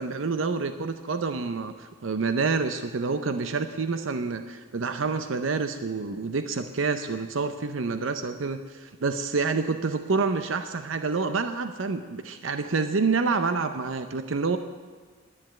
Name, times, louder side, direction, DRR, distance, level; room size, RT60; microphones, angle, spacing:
voice 1, 0.0-14.6, right 4 dB, 85° right, 9 dB, 0.7 m, -28 dB
11.0 x 9.8 x 8.7 m, 1.5 s
head